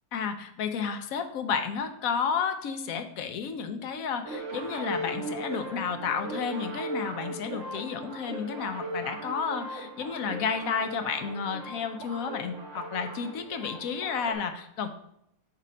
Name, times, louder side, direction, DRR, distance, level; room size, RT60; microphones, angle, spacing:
voice 1, 0.1-14.9, left 6 dB, 70° left, 8 dB, 0.9 m, -32 dB
sound 1, 4.2-14.3, right 1 dB, 55° right, 1.2 m, -38 dB
8.1 x 2.8 x 5.0 m, 0.77 s
omnidirectional pair, 1.8 m